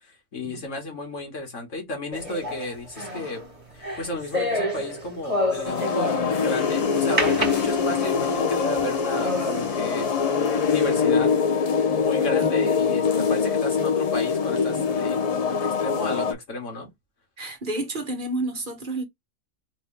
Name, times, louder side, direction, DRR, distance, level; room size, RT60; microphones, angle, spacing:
voice 1, 0.1-3.4 3.7-10.1 10.7-11.3 11.9-16.9, left 2 dB, 85° left, 2.2 m, -33 dB
sound 1, 2.1-6.5 7.2-8.3 8.8-8.9 9.2-9.7, left 1 dB, 25° right, 1.8 m, -29 dB
sound 2, 5.6-16.3, left 5 dB, 50° left, 0.4 m, -23 dB
sound 3, 6.4-11.2, left 4 dB, 65° left, 1.6 m, -43 dB
voice 2, 17.4-19.0, right 2 dB, 45° right, 1.1 m, -30 dB
4.1 x 3.1 x 3.4 m
omnidirectional pair, 1.3 m